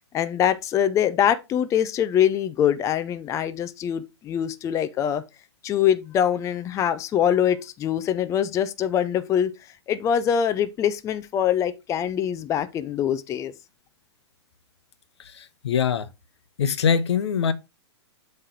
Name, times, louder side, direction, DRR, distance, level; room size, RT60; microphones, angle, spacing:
voice 1, 0.1-5.2 5.6-9.5 9.9-13.5, left 9 dB, 20° left, 0.5 m, -23 dB
voice 2, 15.2-16.1 16.6-17.5, left 7 dB, 70° left, 0.8 m, -23 dB
7.5 x 3.3 x 4.4 m
hypercardioid pair, 115°, 15 cm